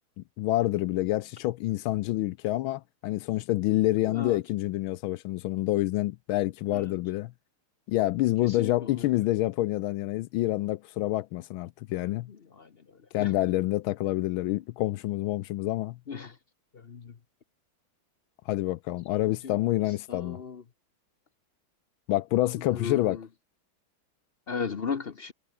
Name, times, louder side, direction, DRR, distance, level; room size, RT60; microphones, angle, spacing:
voice 1, 0.2-7.3 7.9-12.3 13.1-16.0 18.5-20.4 22.1-23.2, left 16 dB, 75° left, 1.3 m, -27 dB
voice 2, 4.1-4.4 6.7-6.9 8.4-9.1 12.6-12.7 13.2-13.3 16.1-16.3 16.7-17.1 19.4-19.6 20.1-20.6 22.7-23.3 24.5-25.3, left 6 dB, 50° left, 0.7 m, -36 dB
omnidirectional pair, 2.4 m